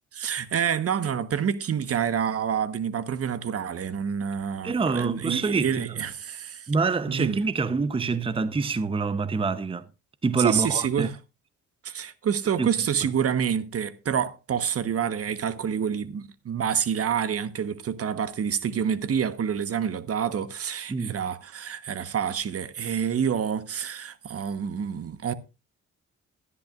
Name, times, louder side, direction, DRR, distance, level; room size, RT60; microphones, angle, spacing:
voice 1, 0.1-6.7 7.1-7.4 10.4-11.2 11.8-25.3, right 8 dB, 50° right, 1.2 m, -28 dB
voice 2, 4.6-5.9 6.7-9.9 10.2-11.1 12.6-12.7 20.9-21.2, right 4 dB, 20° right, 0.7 m, -26 dB
16.5 x 11.5 x 2.5 m
cardioid pair, 90°, 30 cm